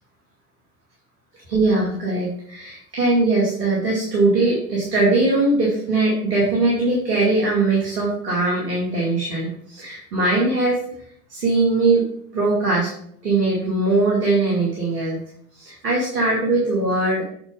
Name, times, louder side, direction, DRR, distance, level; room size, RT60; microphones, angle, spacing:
voice 1, 1.5-10.8 11.3-12.0 12.3-12.9 13.2-15.2 15.5-17.2, right 2 dB, 80° right, -4 dB, 2.4 m, -20 dB
8.6 x 4.3 x 5.3 m, 0.67 s
figure-of-eight pair, 95°, 47 cm